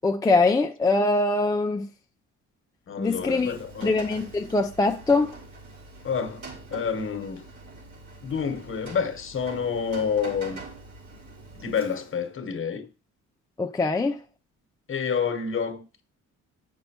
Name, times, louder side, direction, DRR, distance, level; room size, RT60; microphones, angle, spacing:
voice 1, 0.0-1.9 3.0-3.5 3.8-5.3 13.6-14.2, left 3 dB, 10° left, 0.4 m, -23 dB
voice 2, 2.9-3.9 6.0-7.5 8.2-10.6 11.5-12.9 14.9-16.0, left 6 dB, 45° left, 1.1 m, -29 dB
Rain, 3.0-12.3, right 3 dB, 65° right, 3.9 m, -44 dB
9.2 x 5.4 x 2.9 m
cardioid pair, 90°, 30 cm